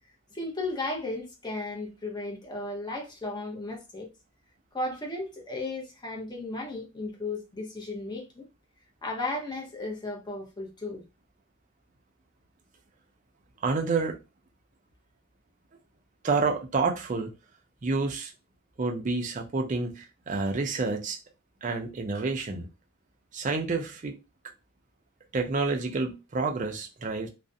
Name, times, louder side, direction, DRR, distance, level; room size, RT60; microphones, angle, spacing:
voice 1, 0.3-4.1 4.7-8.5 9.0-11.0, left 2 dB, 20° left, 0.6 m, -35 dB
voice 2, 13.6-14.2 16.2-17.3 17.8-18.3 18.8-21.2 21.6-22.7 23.3-24.2 25.3-27.3, right 3 dB, 35° right, 0.4 m, -29 dB
2.4 x 2.0 x 2.5 m
head